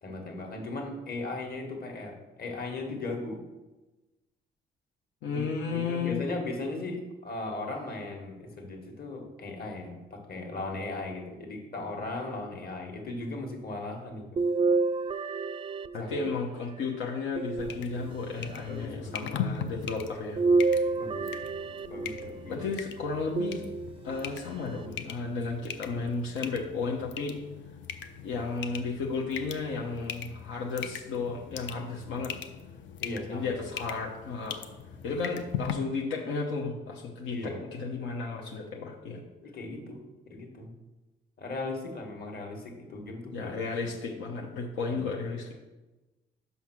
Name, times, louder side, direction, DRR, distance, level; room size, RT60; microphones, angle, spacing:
voice 1, 0.0-3.4 5.3-14.4 16.0-16.1 18.7-19.9 21.0-21.3 21.9-22.6 33.0-33.5 37.3-37.6 39.4-40.7 41.4-43.5 44.9-45.1, left 2 dB, 50° left, 2 dB, 1.7 m, -38 dB
voice 2, 5.2-6.2 15.9-20.8 22.5-23.7 24.0-27.4 28.2-32.3 33.3-34.6 35.0-39.2 43.3-45.5, left 4 dB, 85° left, -1 dB, 1.0 m, -33 dB
sound 1, 14.4-16.6 17.4-18.4 20.4-22.4 23.4-24.2 24.9-25.0 26.4-26.5, right 3 dB, 25° right, 0.3 m, -29 dB
sound 2, 17.6-35.7, left 8 dB, 70° left, 0.6 m, -40 dB
5.6 x 5.6 x 6.1 m, 1.1 s
cardioid pair, 90°, 20 cm